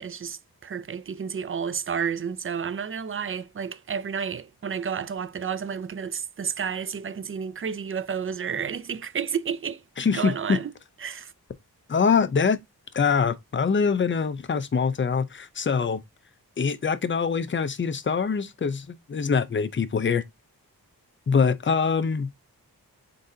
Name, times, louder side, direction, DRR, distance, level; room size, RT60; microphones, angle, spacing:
voice 1, 0.0-9.8 10.1-10.7 11.0-11.3, right 7 dB, 35° right, 0.4 m, -31 dB
voice 2, 10.0-10.6 11.9-12.6 12.9-16.0 16.6-20.2 21.3-22.3, left 5 dB, 30° left, 0.5 m, -24 dB
3.9 x 3.7 x 2.6 m
wide cardioid pair, 50°, 38 cm